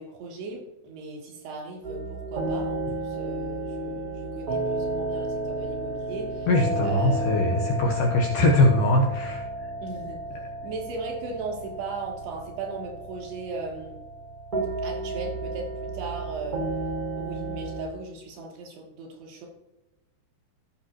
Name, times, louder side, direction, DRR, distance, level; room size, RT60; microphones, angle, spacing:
voice 1, 0.0-6.5 6.8-7.2 9.8-10.2 10.6-14.0 14.8-16.8 17.2-19.5, right 4 dB, 80° right, -1 dB, 4.8 m, -37 dB
sound 1, 1.8-17.9, right 2 dB, 60° right, 0.8 m, -32 dB
voice 2, 6.5-9.7, left 2 dB, 70° left, 0 dB, 2.5 m, -22 dB
16.5 x 6.4 x 3.0 m, 0.99 s
omnidirectional pair, 4.6 m